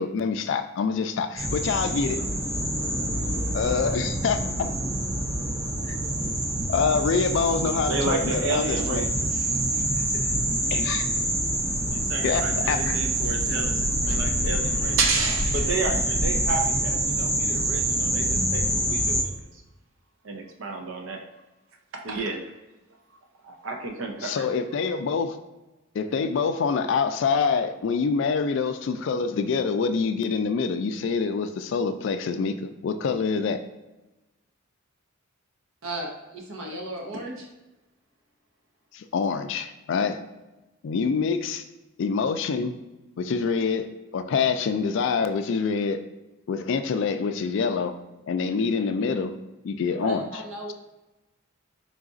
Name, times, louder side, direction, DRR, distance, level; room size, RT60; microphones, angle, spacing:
voice 1, 0.0-2.2 3.5-4.7 5.9-6.0 6.7-9.0 10.7-11.1 12.2-13.0 24.2-25.4 25.9-33.6 38.9-40.2 40.8-41.6 42.0-42.7 43.2-43.9 44.1-46.0 46.5-48.0 48.3-49.3 49.6-50.2, left 5 dB, 60° left, 9 dB, 0.3 m, -26 dB
sound 1, 1.4-19.2, right 1 dB, 15° right, 0.5 m, -26 dB
voice 2, 7.8-10.3 11.9-19.6 20.2-21.2 21.9-22.4 23.4-24.4, right 3 dB, 65° right, 3 dB, 0.5 m, -31 dB
voice 3, 35.8-37.5 50.0-50.7, right 1 dB, 80° right, 0 dB, 0.9 m, -34 dB
3.9 x 2.4 x 3.7 m, 1.0 s
head